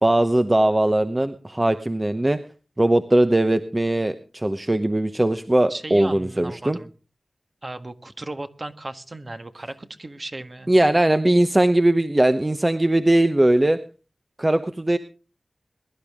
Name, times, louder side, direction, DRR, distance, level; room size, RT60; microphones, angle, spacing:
voice 1, 0.0-2.4 2.8-6.8 10.7-13.8 14.4-15.0, right 1 dB, 25° right, 10 dB, 0.9 m, -20 dB
voice 2, 5.7-6.9 7.6-10.7, right 2 dB, 40° right, 9 dB, 1.5 m, -36 dB
22.0 x 12.0 x 3.6 m, 0.35 s
wide cardioid pair, 80°, 0 cm